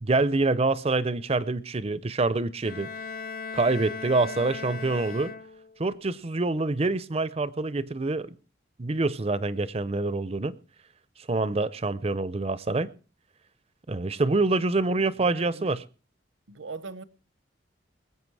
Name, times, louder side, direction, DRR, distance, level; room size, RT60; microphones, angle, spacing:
voice 1, 0.0-2.9 3.5-5.3 5.8-8.4 8.8-10.5 11.3-12.9 13.9-15.8, right 3 dB, 30° right, 0.5 m, -26 dB
Bowed string instrument, 2.6-5.9, left 5 dB, 50° left, 0.6 m, -38 dB
voice 2, 14.9-15.7 16.5-17.0, right 4 dB, 80° right, 0.9 m, -41 dB
21.0 x 8.1 x 4.7 m
head